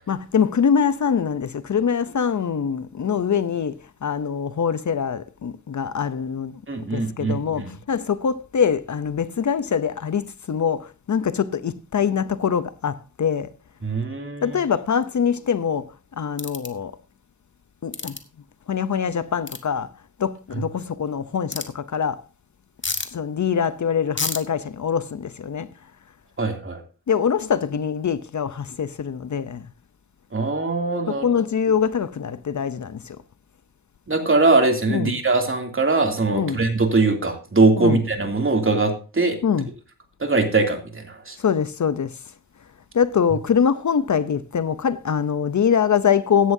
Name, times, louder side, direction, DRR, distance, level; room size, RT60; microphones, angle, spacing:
voice 1, 0.1-6.6 6.9-13.5 14.4-16.9 17.8-18.2 18.7-19.9 20.2-22.2 23.1-25.7 27.1-29.7 31.1-33.2 34.9-35.1 36.3-36.6 37.8-38.0 39.4-39.7 41.4-42.2 42.9-46.5, left 7 dB, 55° left, 0.7 m, -23 dB
voice 2, 6.7-7.7 13.8-14.6 26.4-26.8 30.3-31.2 34.1-39.4 40.2-41.4, right 3 dB, 35° right, 2.8 m, -21 dB
sound 1, 16.4-16.7 17.9-18.2 19.5-19.6 21.5-21.7 22.8-23.1 24.2-24.4, left 3 dB, 35° left, 1.6 m, -28 dB
16.5 x 11.0 x 2.7 m
wide cardioid pair, 90°, 34 cm